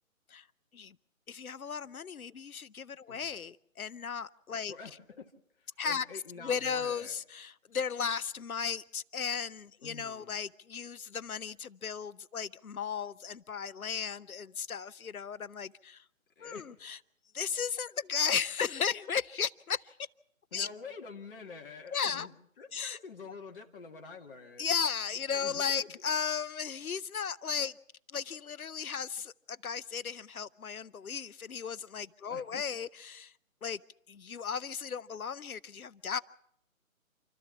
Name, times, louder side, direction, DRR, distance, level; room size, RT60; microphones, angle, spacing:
voice 1, 1.3-4.7 5.8-6.0 6.4-16.0 16.4-17.0 17.3-19.9 20.5-20.7 21.9-22.3 22.7-23.0 24.6-27.7 28.1-29.3 29.6-33.3 33.6-33.8 34.1-36.2, left 6 dB, 85° left, 0.8 m, -35 dB
voice 2, 4.7-5.3 5.6-7.1 9.8-10.4 16.4-16.7 20.5-24.7 25.3-26.0 32.3-32.6, left 4 dB, 40° left, 2.0 m, -47 dB
28.5 x 13.5 x 7.2 m
figure-of-eight pair, 150°, 42 cm